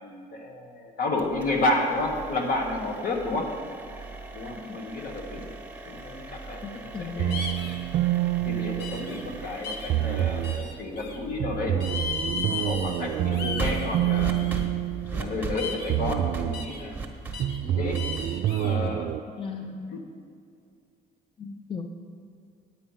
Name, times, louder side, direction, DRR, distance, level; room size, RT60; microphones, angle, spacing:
voice 1, 0.0-3.5 4.3-5.5 5.8-7.5 8.4-11.8 12.3-14.5 15.1-17.0 17.6-18.1 18.5-19.1 19.9-20.0, left 2 dB, 55° left, 2 dB, 1.6 m, -31 dB
sound 1, 1.2-19.1, right 4 dB, 10° right, 1.3 m, -39 dB
voice 2, 6.6-7.4 19.4-20.0 21.4-21.9, left 5 dB, 30° left, 5 dB, 0.6 m, -37 dB
sound 2, 7.2-9.4 9.9-10.7 11.4-15.5 15.9-16.7 17.4-19.2, right 13 dB, 55° right, 0.4 m, -28 dB
sound 3, 7.3-7.8 8.8-9.2 9.6-9.9 10.4-11.2 11.8-13.0 13.3-14.6 15.6-16.0 16.5-16.8 17.3-17.6 17.9-18.8, left 4 dB, 70° left, 1.2 m, -35 dB
9.0 x 8.9 x 5.6 m, 2.4 s
cardioid pair, 110°, 17 cm